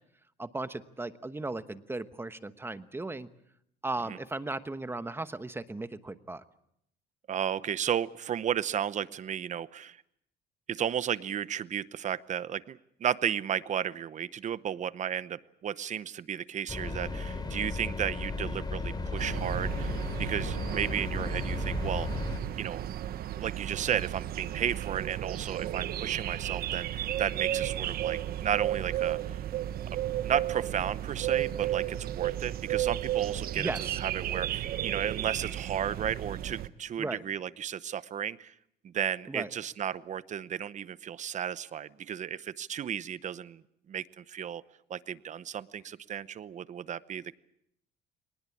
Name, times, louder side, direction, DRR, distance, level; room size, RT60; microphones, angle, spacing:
voice 1, 0.4-3.3 3.8-6.4 33.5-34.0 37.0-37.2 39.3-39.5, right 2 dB, 15° right, 12 dB, 1.1 m, -36 dB
voice 2, 7.3-10.0 10.7-19.9 20.2-22.1 22.6-22.8 23.4-29.4 30.2-33.7 34.0-38.5 38.8-43.6 43.9-44.6 44.9-47.4, right 9 dB, 45° right, 17 dB, 0.9 m, -33 dB
sound 1, 16.7-22.4, left 3 dB, 25° left, 3.8 m, -35 dB
sound 2, 19.2-36.7, right 12 dB, 65° right, 1.1 m, -33 dB
23.0 x 19.5 x 8.5 m, 0.74 s
cardioid pair, 110°, 17 cm